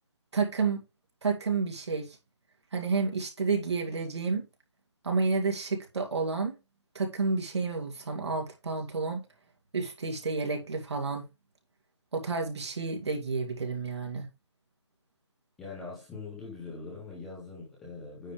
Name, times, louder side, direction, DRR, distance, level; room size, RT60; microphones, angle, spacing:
voice 1, 0.3-0.8 1.2-2.2 2.7-4.5 5.0-6.5 6.9-9.2 9.7-11.3 12.1-14.3, right 4 dB, 70° right, 2.5 m, -30 dB
voice 2, 15.6-18.3, left 4 dB, ahead, 0.3 m, -42 dB
9.2 x 3.4 x 5.0 m
hypercardioid pair, 170°, 15 cm